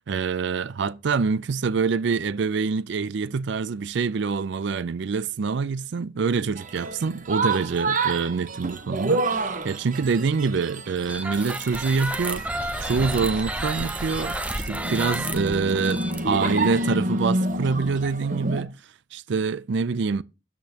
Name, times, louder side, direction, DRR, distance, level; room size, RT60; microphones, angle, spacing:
voice 1, 0.1-12.5 12.8-18.8 19.1-20.2, right 5 dB, 60° right, 0.4 m, -26 dB
sound 1, 6.6-18.6, right 2 dB, 40° right, 0.9 m, -29 dB
sound 2, 11.1-17.0, right 1 dB, 5° right, 0.5 m, -31 dB
13.0 x 8.3 x 2.9 m
head